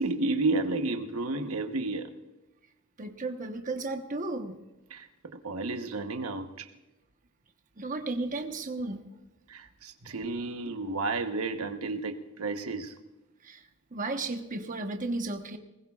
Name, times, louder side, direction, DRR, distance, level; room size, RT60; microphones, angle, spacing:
voice 1, 0.0-2.1 4.9-6.7 9.5-12.9, right 3 dB, 80° right, 6 dB, 1.1 m, -32 dB
voice 2, 3.0-4.6 7.8-9.0 10.0-10.2 13.4-13.6 13.9-15.6, right 2 dB, 35° right, 4 dB, 1.1 m, -34 dB
20.5 x 20.0 x 2.4 m, 1.0 s
head